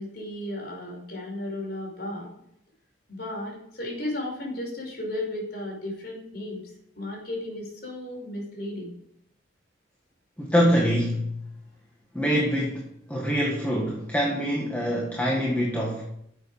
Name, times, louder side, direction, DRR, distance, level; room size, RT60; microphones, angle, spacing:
voice 1, 0.0-2.3 3.1-6.6 7.0-8.9, left 1 dB, 60° left, -1 dB, 5.2 m, -34 dB
voice 2, 10.4-11.3 12.1-12.8 13.1-16.0, equal, 10° left, -3 dB, 1.7 m, -24 dB
11.0 x 8.0 x 5.0 m, 0.73 s
head